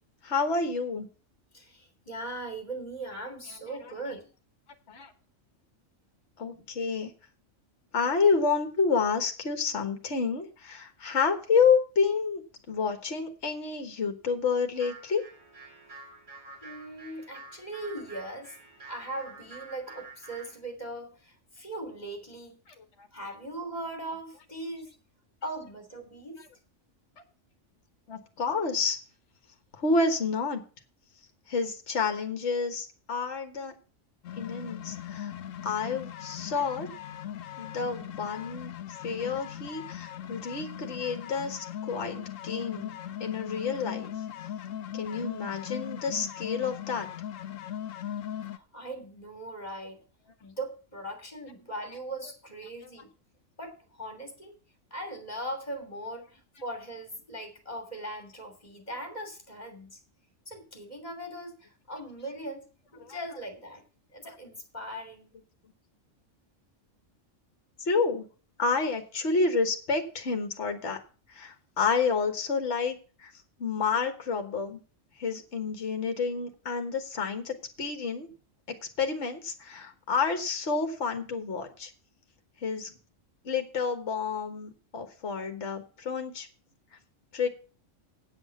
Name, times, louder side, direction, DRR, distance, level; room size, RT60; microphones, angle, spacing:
voice 1, 0.2-1.1 4.9-5.1 6.4-7.1 7.9-15.2 23.0-23.1 28.1-29.0 29.8-30.6 31.5-33.7 34.4-35.3 35.6-36.9 37.6-38.7 39.0-44.1 44.9-47.1 63.0-63.2 67.8-68.3 68.6-71.0 71.3-73.3 73.6-74.8 75.2-78.3 78.7-81.9 82.6-82.9 83.5-86.5 87.3-87.5, left 5 dB, 60° left, 6 dB, 1.7 m, -29 dB
voice 2, 1.5-4.3 16.6-18.6 18.8-22.6 23.1-24.9 25.4-26.4 48.4-50.0 50.4-53.1 53.6-54.6 54.9-60.0 60.5-63.8 64.1-65.4, right 1 dB, 30° left, 5 dB, 3.0 m, -39 dB
sound 1, 14.7-20.6, right 3 dB, 85° right, 4.8 m, -48 dB
sound 2, 34.2-48.6, left 10 dB, 80° left, 1.1 m, -39 dB
8.2 x 8.0 x 6.9 m, 0.37 s
omnidirectional pair, 1.4 m